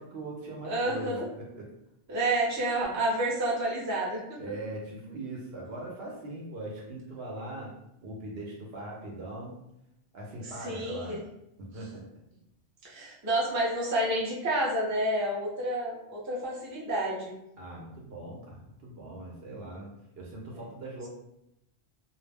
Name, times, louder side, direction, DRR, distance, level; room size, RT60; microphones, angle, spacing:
voice 1, 0.0-1.6 4.4-7.7 8.0-9.6 10.1-11.2 11.6-12.0 17.6-21.1, right 2 dB, 65° right, -2 dB, 0.8 m, -40 dB
voice 2, 0.6-1.3 2.1-4.4 10.4-11.2 12.8-17.3 20.5-20.6, right 1 dB, 20° right, -6 dB, 0.5 m, -29 dB
2.3 x 2.0 x 3.3 m, 0.83 s
omnidirectional pair, 1.2 m